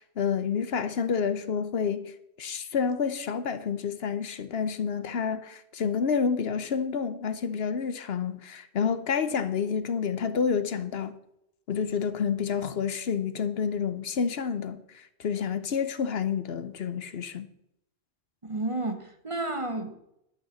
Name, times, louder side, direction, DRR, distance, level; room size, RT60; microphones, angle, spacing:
voice 1, 0.0-2.1 2.4-11.1 11.7-17.5, left 6 dB, 65° left, 1.0 m, -29 dB
voice 2, 18.4-20.0, right 2 dB, 30° right, 1.1 m, -31 dB
11.0 x 6.1 x 7.0 m
omnidirectional pair, 1.1 m